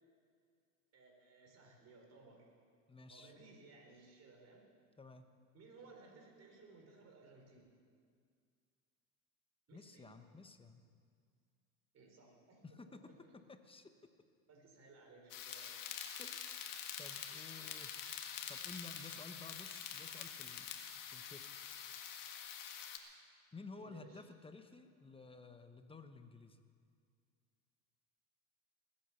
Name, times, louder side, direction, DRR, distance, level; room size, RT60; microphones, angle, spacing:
voice 1, 0.9-2.5 3.1-4.6 5.5-7.6 9.7-10.1 11.9-13.3 14.5-15.7 23.8-24.2, right 3 dB, 40° right, 1 dB, 4.1 m, -60 dB
voice 2, 2.9-3.3 5.0-5.3 9.7-10.8 12.6-13.0 13.5-13.9 16.2-16.7 17.0-17.9 18.5-21.4 23.5-26.6, left 3 dB, 15° left, 8 dB, 1.1 m, -54 dB
sound 1, 15.3-23.0, left 8 dB, 55° left, 1.7 m, -46 dB
20.0 x 8.7 x 7.1 m, 2.1 s
supercardioid pair, 100°, 38 cm